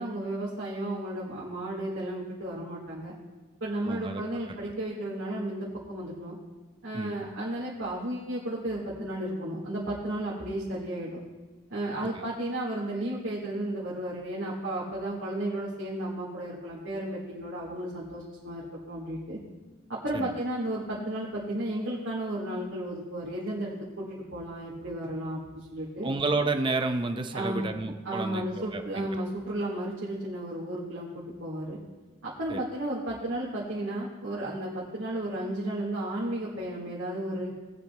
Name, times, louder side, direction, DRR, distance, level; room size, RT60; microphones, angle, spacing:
voice 1, 0.0-3.1 3.6-6.4 6.8-11.2 11.7-19.4 19.9-26.1 27.3-27.6 28.0-31.8 32.2-37.5, right 1 dB, 65° right, -7 dB, 1.9 m, -33 dB
voice 2, 3.9-4.2 6.9-7.2 12.2-12.3 20.1-20.3 26.0-29.2 32.5-32.6, right 3 dB, 20° right, 6 dB, 0.5 m, -30 dB
18.5 x 8.4 x 2.3 m, 1.3 s
head